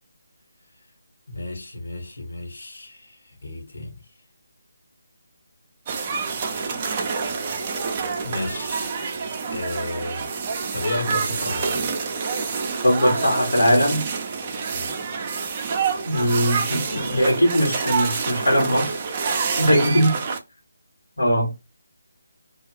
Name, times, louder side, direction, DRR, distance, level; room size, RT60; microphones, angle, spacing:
voice 1, 1.3-4.0 8.2-8.9 9.5-11.9 14.7-14.9 20.1-20.2, left 2 dB, 65° left, 1.3 m, -33 dB
sound 1, 5.9-20.4, right 5 dB, 30° right, 0.5 m, -27 dB
voice 2, 12.8-14.0 16.1-19.0 19.6-20.2 21.2-21.5, equal, 80° left, 1.2 m, -20 dB
2.7 x 2.4 x 2.9 m
figure-of-eight pair, 155°, 0 cm